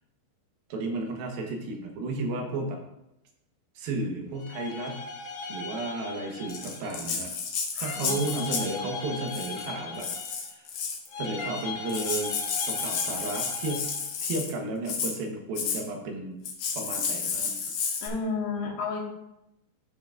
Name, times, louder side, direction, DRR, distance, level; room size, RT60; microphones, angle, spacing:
voice 1, 0.7-2.8 3.8-5.0 5.5-7.4 7.8-10.1 10.6-10.7 11.2-13.9 14.2-16.4 16.7-17.5, right 2 dB, 75° right, 2 dB, 3.0 m, -33 dB
sound 1, 4.3-7.2 7.8-10.6 11.1-14.1, left 4 dB, 55° left, 2.4 m, -39 dB
Rattle (instrument), 6.5-8.8 9.3-9.7 10.0-11.1 11.6-11.7 11.9-14.5 14.9-15.2 15.6-15.8 16.4-18.1, left 5 dB, 70° left, 1.5 m, -31 dB
voice 2, 7.7-8.2 18.0-19.0, left 4 dB, 90° left, -1 dB, 3.4 m, -32 dB
14.0 x 5.8 x 2.5 m, 0.87 s
omnidirectional pair, 4.4 m